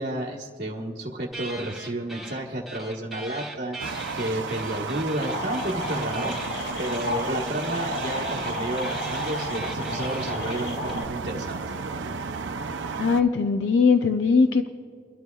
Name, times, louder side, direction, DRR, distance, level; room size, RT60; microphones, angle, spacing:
voice 1, 0.0-11.6, right 1 dB, 50° right, -3 dB, 1.2 m, -31 dB
sound 1, 1.3-2.4 2.7-10.9, right 2 dB, ahead, 1.8 m, -40 dB
sound 2, 3.8-13.2, right 4 dB, 80° right, 0.6 m, -33 dB
sound 3, 5.2-11.0, left 2 dB, 65° left, 1.4 m, -34 dB
voice 2, 13.0-14.7, left 5 dB, 80° left, 7 dB, 0.5 m, -20 dB
29.5 x 12.5 x 2.3 m, 2.1 s
head